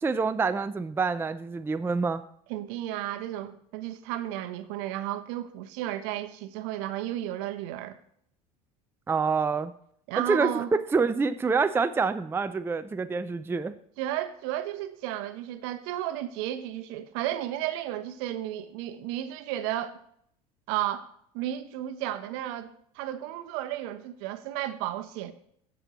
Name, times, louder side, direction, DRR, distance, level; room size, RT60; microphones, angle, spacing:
voice 1, 0.0-2.2 9.1-9.7 10.3-13.7, right 4 dB, 10° right, 0.4 m, -26 dB
voice 2, 2.5-8.0 10.1-10.7 14.0-20.0 20.7-25.3, right 13 dB, 65° right, 0.9 m, -33 dB
15.5 x 6.1 x 3.0 m
hypercardioid pair, 75°, 19 cm